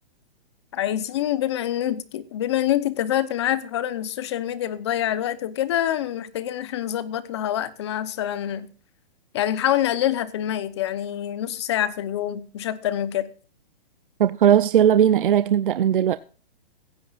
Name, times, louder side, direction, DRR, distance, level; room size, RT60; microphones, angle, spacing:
voice 1, 0.7-8.7 9.3-13.3, left 11 dB, 30° left, 0.9 m, -26 dB
voice 2, 14.2-16.2, right 10 dB, 60° right, 0.6 m, -18 dB
16.0 x 15.5 x 2.5 m
hypercardioid pair, 175°, 30 cm